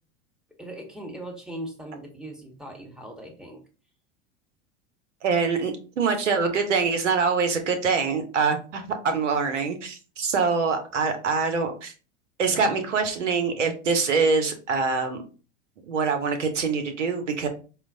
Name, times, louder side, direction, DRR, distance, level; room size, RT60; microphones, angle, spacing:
voice 1, 0.6-3.6 12.5-12.8, right 1 dB, ahead, 1 dB, 0.9 m, -39 dB
voice 2, 5.2-11.9 12.4-15.2 15.9-17.5, right 5 dB, 85° right, 6 dB, 0.8 m, -24 dB
4.3 x 2.1 x 2.6 m, 0.35 s
hypercardioid pair, 85°, 35 cm